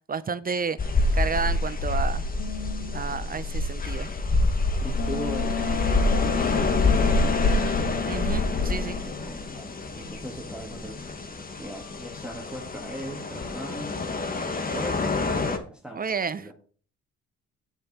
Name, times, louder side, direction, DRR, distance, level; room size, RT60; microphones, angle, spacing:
voice 1, 0.1-0.8 1.1-2.3 2.9-4.1 8.1-9.0 15.9-16.5, right 5 dB, 30° right, 15 dB, 0.5 m, -30 dB
sound 1, 0.8-15.6, left 2 dB, 30° left, 1.3 m, -27 dB
sound 2, 2.4-3.0 4.9-9.6 9.9-10.7, left 12 dB, 75° left, 1.4 m, -32 dB
voice 2, 4.8-7.4 9.0-11.1 11.6-14.0 14.7-16.5, right 1 dB, 5° right, 1 dB, 1.7 m, -39 dB
9.2 x 6.5 x 4.2 m, 0.43 s
cardioid pair, 90°, 30 cm